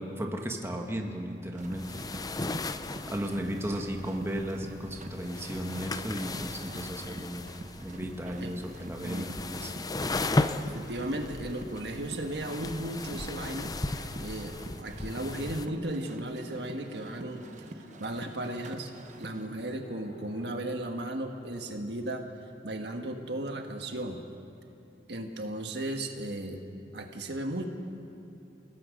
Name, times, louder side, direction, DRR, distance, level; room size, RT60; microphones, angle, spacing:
voice 1, 0.0-2.4 3.1-7.4 7.8-9.7, equal, 15° right, 2 dB, 1.5 m, -35 dB
sound 1, 1.5-19.5, right 1 dB, 45° right, 1.1 m, -47 dB
sound 2, 1.6-15.7, left 2 dB, 20° left, 0.6 m, -36 dB
voice 2, 9.0-9.4 10.6-13.7 14.2-17.4 18.0-18.9 19.2-22.3 22.6-24.2 25.1-26.7 26.9-27.7, right 1 dB, 70° right, 4 dB, 1.6 m, -35 dB
Laughter, 9.7-20.6, equal, 85° left, 3.4 m, -52 dB
29.0 x 18.0 x 5.3 m, 2.7 s
head